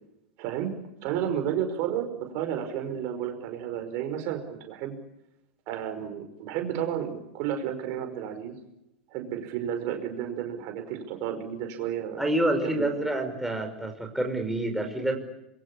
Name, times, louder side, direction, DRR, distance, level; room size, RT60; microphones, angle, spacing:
voice 1, 0.4-5.0 5.7-8.5 9.1-12.2 12.6-12.9, right 9 dB, 50° right, 6 dB, 5.3 m, -32 dB
voice 2, 12.2-15.2, right 1 dB, 5° right, 3 dB, 5.5 m, -27 dB
26.5 x 23.5 x 8.6 m, 0.87 s
hypercardioid pair, 100°, 6 cm